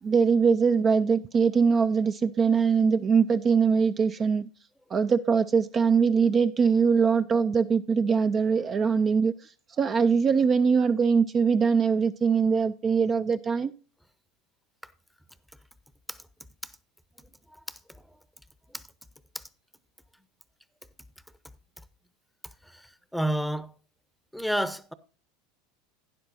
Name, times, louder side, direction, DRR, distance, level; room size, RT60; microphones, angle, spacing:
voice 1, 0.0-4.5 4.9-13.7, right 5 dB, 30° right, 0.4 m, -22 dB
voice 2, 17.5-18.0 18.7-18.8 19.3-19.4 22.6-23.7 24.3-24.9, equal, ahead, 0.7 m, -31 dB
12.0 x 10.0 x 2.6 m
hypercardioid pair, 80°, 0 cm